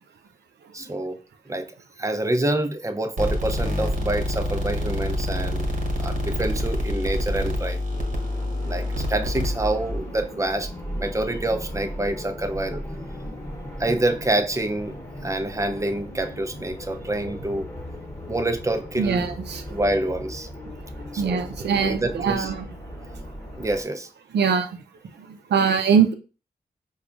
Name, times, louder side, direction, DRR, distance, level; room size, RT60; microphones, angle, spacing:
voice 1, 0.7-1.2 1.5-1.7 2.0-5.7 6.0-7.8 8.7-10.7 11.0-12.8 13.8-15.0 15.2-17.7 18.3-19.3 19.7-20.5 21.1-22.5 23.6-24.1, right 1 dB, 20° right, 0.6 m, -27 dB
sound 1, 3.2-10.0, left 1 dB, 50° right, 1.1 m, -27 dB
sound 2, 7.9-23.8, equal, 15° left, 1.1 m, -37 dB
voice 2, 19.0-19.6 21.2-22.7 24.3-24.7 25.5-26.1, right 6 dB, 80° right, 0.5 m, -22 dB
4.7 x 2.3 x 2.5 m
cardioid pair, 45°, 17 cm